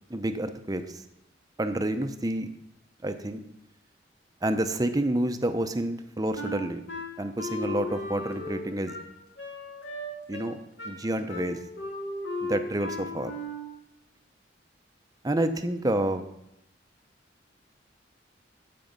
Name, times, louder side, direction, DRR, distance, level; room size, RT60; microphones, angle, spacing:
voice 1, 0.1-1.0 1.6-2.5 3.0-3.4 4.4-6.8 7.2-9.0 10.3-10.6 10.8-11.6 12.4-13.3 15.2-16.2, right 1 dB, 20° right, 8 dB, 0.7 m, -29 dB
Wind instrument woodwind instrument, 6.4-13.8, left 2 dB, 70° left, 2.2 m, -36 dB
15.0 x 5.3 x 5.3 m, 0.81 s
head